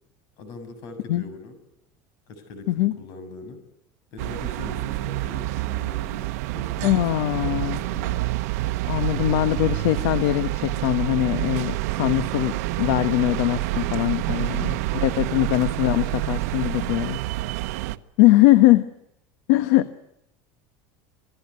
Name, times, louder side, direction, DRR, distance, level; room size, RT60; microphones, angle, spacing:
voice 1, 0.4-1.6 2.3-3.6 4.1-8.2 14.0-14.7, left 3 dB, 55° left, 10 dB, 7.0 m, -41 dB
sound 1, 4.2-18.0, right 18 dB, 85° right, 1.1 m, -27 dB
voice 2, 6.8-7.8 8.9-12.5 12.8-17.2 18.2-18.9 19.5-19.9, left 16 dB, 70° left, 11 dB, 1.3 m, -21 dB
27.5 x 18.0 x 9.8 m, 0.81 s
cardioid pair, 165°, 8 cm